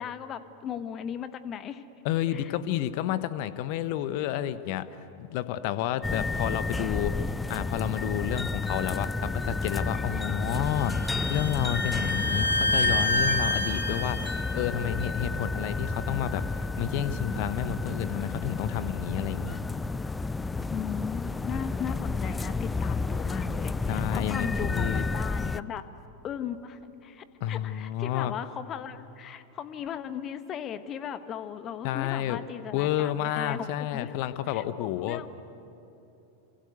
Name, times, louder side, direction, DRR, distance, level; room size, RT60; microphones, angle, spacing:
voice 1, 0.0-1.8 2.3-2.5 20.7-25.8 26.2-34.1 34.5-35.3, left 8 dB, 30° left, 12 dB, 1.3 m, -37 dB
voice 2, 2.0-4.9 5.2-19.6 23.8-25.0 27.4-28.3 31.8-32.4 32.7-35.2, left 11 dB, 45° left, 14 dB, 1.2 m, -30 dB
sound 1, 6.0-25.6, left 3 dB, 10° left, 0.5 m, -31 dB
Bowed string instrument, 10.5-14.3, left 1 dB, 85° left, 5.7 m, -28 dB
28.0 x 26.0 x 8.1 m, 3.0 s
figure-of-eight pair, 90°, 0 cm